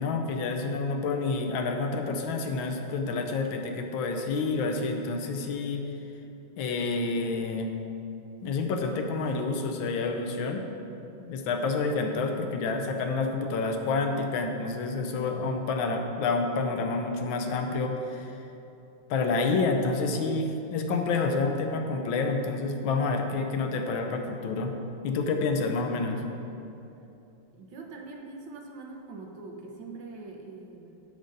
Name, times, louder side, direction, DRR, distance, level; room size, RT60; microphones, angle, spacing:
voice 1, 0.0-5.9 6.6-7.7 8.4-10.6 11.2-18.3 19.1-24.7 25.0-26.2, left 3 dB, 75° left, 4 dB, 1.4 m, -28 dB
voice 2, 27.5-31.0, right 3 dB, 70° right, 2 dB, 1.5 m, -43 dB
7.9 x 5.1 x 5.2 m, 2.8 s
omnidirectional pair, 2.2 m